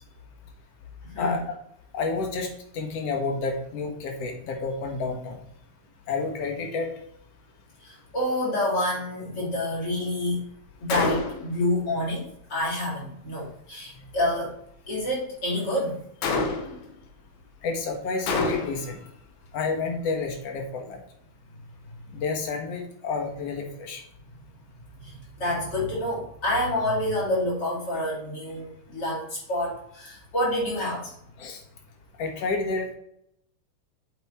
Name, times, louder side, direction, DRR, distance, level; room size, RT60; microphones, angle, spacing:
voice 1, 1.9-5.4 6.1-6.9 17.6-19.0 19.5-21.0 22.1-24.0 31.4-31.6 32.2-32.9, left 4 dB, 60° left, 3 dB, 2.2 m, -30 dB
voice 2, 7.8-10.4 10.8-14.5 14.9-16.0 25.0-31.1, left 1 dB, 35° left, -5 dB, 3.4 m, -28 dB
Gunshot gunfire, 10.9-11.6 16.2-16.9 18.3-19.0, left 3 dB, 85° left, 2.5 m, -27 dB
7.8 x 4.7 x 4.5 m, 0.74 s
omnidirectional pair, 3.3 m